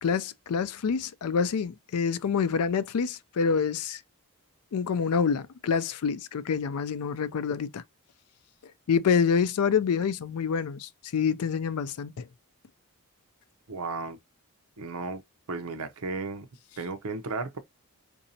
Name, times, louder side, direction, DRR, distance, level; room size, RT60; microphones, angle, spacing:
voice 1, 0.0-4.0 4.7-7.8 8.9-12.3, left 6 dB, 80° left, 0.4 m, -27 dB
voice 2, 13.7-14.2 14.8-15.2 15.5-16.5 16.8-17.6, right 3 dB, 80° right, 0.7 m, -34 dB
4.0 x 2.6 x 2.7 m
head